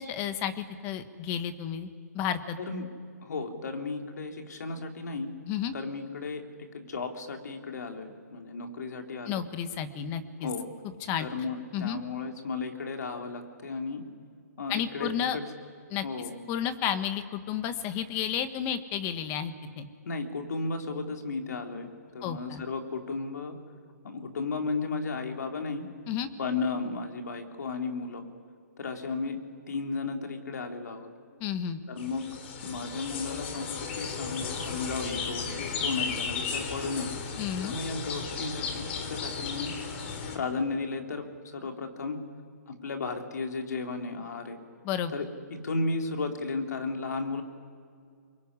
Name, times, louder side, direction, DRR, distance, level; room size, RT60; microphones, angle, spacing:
voice 1, 0.0-1.9 2.1-2.6 5.5-5.7 9.3-10.5 11.0-11.3 11.7-12.0 14.7-15.4 15.9-16.0 16.5-19.9 22.2-22.6 26.1-26.3 31.4-31.8 37.4-37.8 44.8-45.1, left 9 dB, 25° left, 10 dB, 1.5 m, -32 dB
voice 2, 3.2-5.3 5.7-6.4 6.7-9.4 10.4-10.7 11.2-14.0 14.6-15.5 16.0-16.4 20.0-23.6 24.0-25.9 26.4-28.2 28.8-29.4 29.7-31.1 31.9-32.2 32.6-37.1 37.6-39.7 40.3-41.3 41.5-42.2 42.7-44.6 45.1-47.4, left 4 dB, 75° left, 3 dB, 3.7 m, -34 dB
sound 1, 32.0-40.4, left 5 dB, 40° left, 3.4 m, -35 dB
25.5 x 22.5 x 9.8 m, 2.2 s
hypercardioid pair, 155°, 9 cm